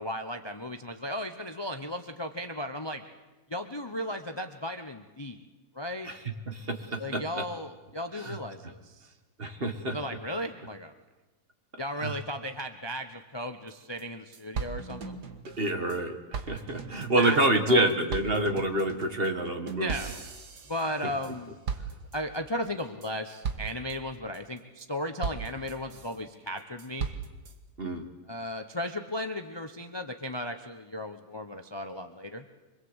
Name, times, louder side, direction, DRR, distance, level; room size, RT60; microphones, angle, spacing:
voice 1, 0.0-3.0 3.5-5.5 5.7-6.1 7.0-9.1 9.9-10.9 11.8-15.2 17.0-17.4 17.6-17.9 19.8-20.2 20.7-21.6 22.1-27.1 28.3-32.5, equal, 20° left, 7 dB, 0.8 m, -35 dB
voice 2, 6.5-7.2 8.2-8.3 9.4-10.0 12.0-12.2 15.6-19.9 27.8-28.1, right 1 dB, 35° right, 5 dB, 2.0 m, -27 dB
sound 1, 13.7-13.8 14.0-14.1 14.3-16.0 16.3-21.4 21.7-22.4 22.8-23.1 23.4-23.9 24.3-24.8 25.2-26.2 26.6-27.5, right 6 dB, 85° right, 2.2 m, -38 dB
25.0 x 21.5 x 8.1 m, 1.2 s
omnidirectional pair, 1.7 m